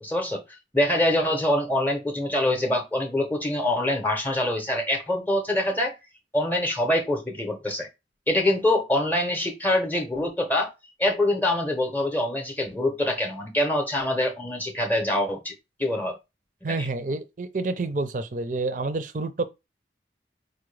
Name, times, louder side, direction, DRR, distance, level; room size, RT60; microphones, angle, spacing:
voice 1, 0.0-5.9 6.3-7.9 8.3-10.7 11.0-15.5 15.8-16.2 16.7-16.9, left 1 dB, 10° left, 0.7 m, -25 dB
voice 2, 16.6-19.4, right 3 dB, 45° right, 0.5 m, -28 dB
4.6 x 2.2 x 3.2 m
head